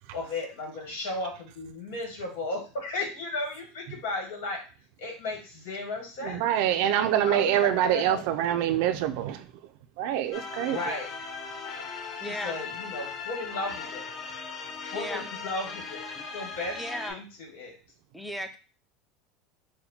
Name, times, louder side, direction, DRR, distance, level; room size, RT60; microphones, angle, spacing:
voice 1, 0.1-4.6 5.0-6.5 7.2-8.2 10.6-11.1 12.2-14.1 14.8-16.0 16.3-17.7, left 2 dB, 85° left, 1.5 m, -35 dB
voice 2, 6.2-9.5 10.0-10.8, right 11 dB, 60° right, 0.4 m, -25 dB
sound 1, 10.3-17.1, left 5 dB, 40° left, 0.8 m, -38 dB
voice 3, 12.2-12.6 14.9-15.2 16.1-16.2 16.8-17.2 18.1-18.6, equal, 5° left, 0.4 m, -35 dB
4.2 x 2.2 x 4.2 m
supercardioid pair, 155°, 0 cm